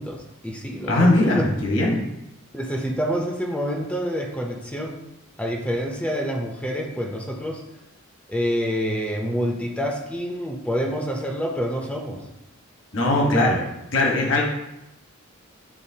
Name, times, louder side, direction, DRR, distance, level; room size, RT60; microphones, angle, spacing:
voice 1, 0.0-1.5 2.5-5.0 5.4-7.6 8.3-12.2, equal, 5° left, 0 dB, 0.6 m, -27 dB
voice 2, 0.9-2.0 12.9-13.6 13.9-14.4, left 2 dB, 60° left, -1 dB, 1.3 m, -20 dB
8.9 x 3.9 x 2.8 m, 0.90 s
head